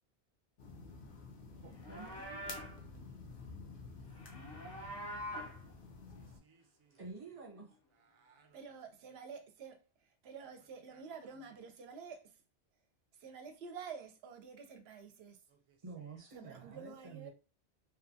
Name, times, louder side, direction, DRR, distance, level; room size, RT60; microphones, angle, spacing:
sound 1, 0.6-6.4, left 3 dB, 80° left, 1.0 m, -51 dB
voice 1, 1.6-2.5 7.0-7.8 15.8-17.3, right 4 dB, 35° right, 1.0 m, -50 dB
Livestock farm animals working animals, 1.7-2.8 4.1-5.6, equal, 35° left, 0.4 m, -45 dB
voice 2, 6.1-7.0 7.2-7.4 7.9-8.6 9.1-9.2 10.9-11.6 15.5-16.2, right 5 dB, 50° right, 0.3 m, -69 dB
voice 3, 8.5-12.3 13.1-15.4 16.3-17.3, right 6 dB, 70° right, 0.8 m, -49 dB
3.0 x 2.2 x 2.6 m
omnidirectional pair, 1.2 m